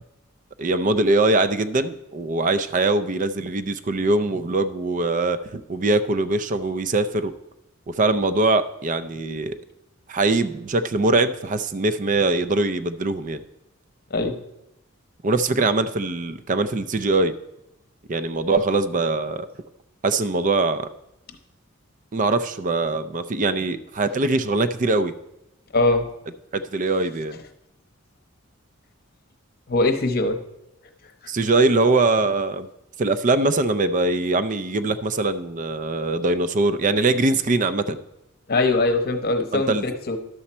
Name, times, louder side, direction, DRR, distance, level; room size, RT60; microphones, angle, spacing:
voice 1, 0.6-7.3 7.9-9.5 10.1-13.4 15.2-17.3 18.1-19.5 20.0-20.9 22.1-25.1 26.5-27.4 31.3-32.7 33.0-38.0 39.5-39.8, right 2 dB, 35° right, 12 dB, 0.5 m, -22 dB
voice 2, 25.7-26.0 29.7-30.4 38.5-40.2, left 2 dB, 45° left, 7 dB, 0.9 m, -21 dB
11.0 x 7.0 x 4.3 m, 0.88 s
head